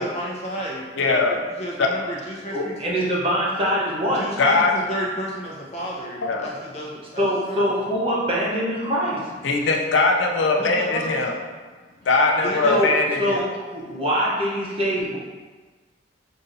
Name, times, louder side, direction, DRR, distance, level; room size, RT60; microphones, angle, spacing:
voice 1, 0.0-2.7 4.1-7.6 10.6-11.3 12.4-12.8, equal, 35° left, -4 dB, 0.8 m, -32 dB
voice 2, 1.0-1.4 1.8-1.9 4.4-4.7 6.2-6.5 9.4-11.3 12.1-13.5, left 3 dB, 85° left, 1 dB, 0.5 m, -20 dB
voice 3, 2.5-4.2 7.2-9.2 12.7-12.9 13.2-15.2, equal, 30° right, -5 dB, 0.8 m, -23 dB
5.4 x 2.7 x 2.6 m, 1.4 s
head